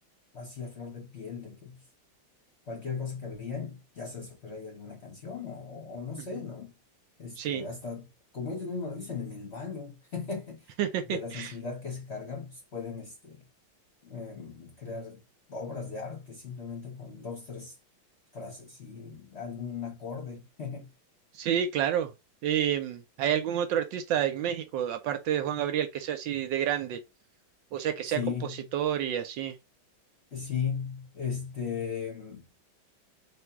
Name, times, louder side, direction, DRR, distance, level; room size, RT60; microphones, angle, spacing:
voice 1, 0.3-1.8 2.7-6.7 7.2-10.7 11.1-13.4 14.0-15.2 15.5-17.8 18.3-20.9 27.8-28.7 30.3-32.5, left 6 dB, 45° left, 0.9 m, -37 dB
voice 2, 10.8-11.5 21.3-22.1 22.4-27.0 27.7-28.2 28.7-29.6, right 10 dB, 75° right, 1.2 m, -29 dB
3.5 x 2.6 x 4.6 m
omnidirectional pair, 2.2 m